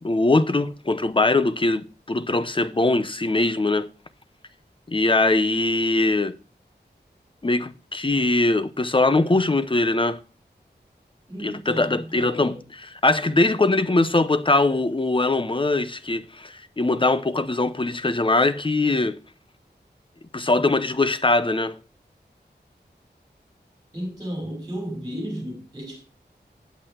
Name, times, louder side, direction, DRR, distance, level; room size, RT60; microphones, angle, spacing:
voice 1, 0.0-3.9 4.9-6.3 7.4-10.2 11.4-12.6 13.0-19.1 20.3-21.8, left 2 dB, 30° left, 0.8 m, -21 dB
voice 2, 11.3-12.6 23.9-26.0, equal, 20° right, 5.3 m, -33 dB
8.4 x 8.2 x 4.4 m
wide cardioid pair, 55°, 18 cm